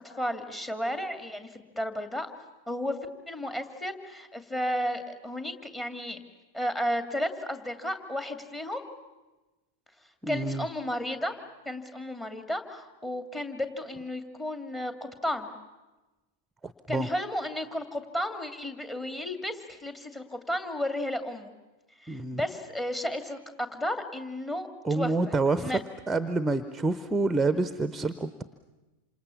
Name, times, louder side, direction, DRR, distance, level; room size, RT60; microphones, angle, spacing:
voice 1, 0.2-2.3 2.7-3.0 3.3-6.2 6.5-8.9 10.3-11.4 11.7-15.5 16.9-21.5 22.0-24.7 25.0-25.1 25.6-25.8, left 1 dB, 15° left, 7 dB, 2.5 m, -33 dB
voice 2, 10.2-10.7 16.6-17.1 22.1-22.4 24.8-25.7 26.1-28.4, right 3 dB, 10° right, 12 dB, 0.9 m, -28 dB
28.0 x 27.0 x 7.1 m, 1.1 s
figure-of-eight pair, 90°, 0 cm